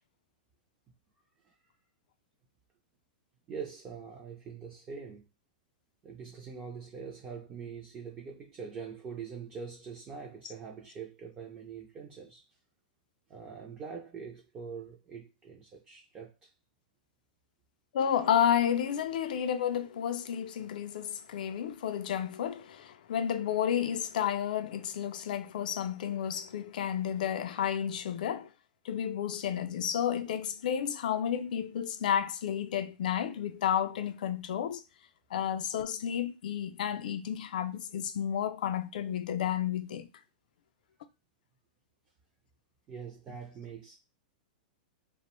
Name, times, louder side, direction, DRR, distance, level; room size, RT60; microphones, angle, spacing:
voice 1, 3.5-5.2 6.0-12.5 13.3-16.5 42.9-44.0, right 6 dB, 20° right, 0.4 m, -43 dB
voice 2, 17.9-28.5 28.8-34.8 35.3-40.1, left 9 dB, 70° left, 0.3 m, -31 dB
2.4 x 2.0 x 2.9 m
supercardioid pair, 160°, 5 cm